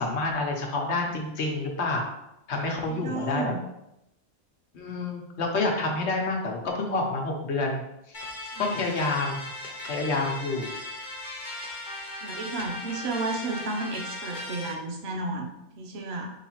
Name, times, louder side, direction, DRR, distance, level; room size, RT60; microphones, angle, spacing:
voice 1, 0.0-2.1 2.5-3.5 4.7-7.8 8.6-9.4 9.9-10.7, left 3 dB, 75° left, 1 dB, 1.1 m, -28 dB
voice 2, 2.8-3.6 8.6-8.7 12.2-16.3, right 3 dB, 70° right, 1 dB, 1.0 m, -33 dB
sound 1, 8.1-14.7, left 1 dB, 45° left, 1.0 m, -38 dB
4.9 x 3.2 x 3.0 m, 0.86 s
omnidirectional pair, 1.2 m